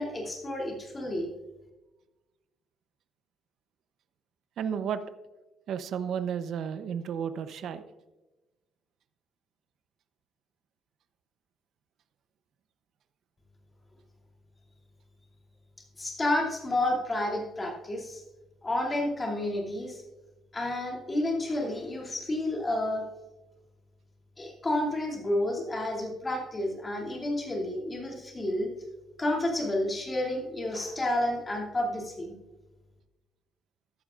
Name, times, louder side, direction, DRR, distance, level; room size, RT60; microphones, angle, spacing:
voice 1, 0.0-1.3 16.0-18.2 18.6-20.0 20.5-23.1 24.4-28.7 29.2-32.4, left 1 dB, 20° left, -2 dB, 2.7 m, -30 dB
voice 2, 4.6-5.0 5.7-7.9, right 8 dB, 60° right, 11 dB, 0.7 m, -32 dB
14.5 x 11.5 x 2.5 m, 1.1 s
cardioid pair, 145°, 0 cm